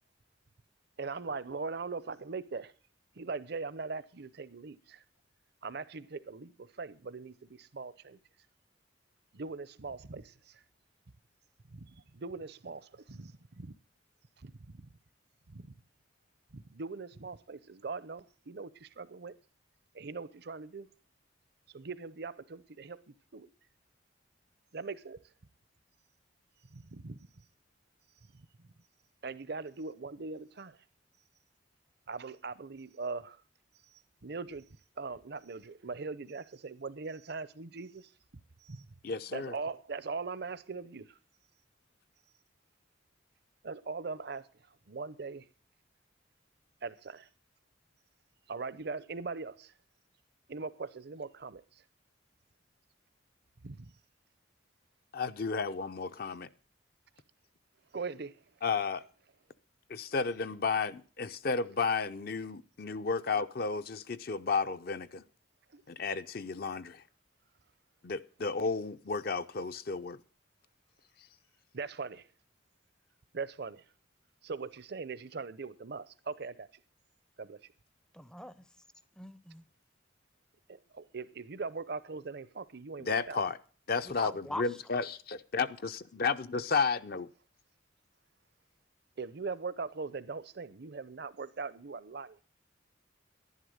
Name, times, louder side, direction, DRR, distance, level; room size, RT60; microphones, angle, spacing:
voice 1, 1.0-2.7 3.2-5.0 5.6-8.2 9.3-10.6 11.7-13.7 14.4-14.9 15.5-15.7 16.5-19.3 19.9-20.9 21.7-23.0 23.3-23.5 24.7-25.2 26.7-27.2 29.2-30.8 32.1-33.4 34.2-34.7 35.0-38.1 38.6-38.9 39.3-41.2 43.6-44.5 44.9-45.4 46.8-47.3 48.5-49.7 50.5-51.6 53.6-53.9 57.9-58.3 65.7-65.8 71.7-72.3 73.3-73.8 74.4-76.7 77.4-77.6 80.7-83.4 89.2-92.4, right 4 dB, 55° right, 0.7 m, -41 dB
voice 2, 39.0-39.5 55.1-56.5 58.6-59.0 59.9-65.2 65.9-67.0 68.0-70.2 83.0-83.6 83.9-85.2 85.5-87.2, left 4 dB, 50° left, 0.6 m, -32 dB
voice 3, 78.1-78.6 79.2-79.6 84.1-84.6, left 1 dB, 5° left, 0.5 m, -41 dB
11.0 x 11.0 x 6.4 m
head